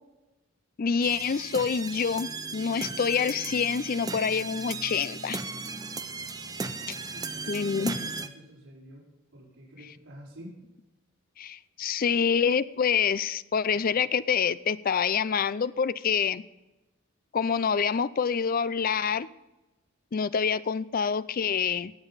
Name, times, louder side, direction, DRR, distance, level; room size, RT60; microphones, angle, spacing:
voice 1, 0.8-5.4 7.5-8.1 11.4-16.4 17.3-19.3 20.1-21.9, left 6 dB, 40° left, 16 dB, 0.4 m, -27 dB
sound 1, 1.0-8.3, right 4 dB, 20° right, 0.5 m, -36 dB
voice 2, 6.6-7.8 8.1-9.0 9.3-10.7, equal, 85° right, -7 dB, 4.7 m, -49 dB
18.5 x 7.1 x 4.0 m, 1.0 s
head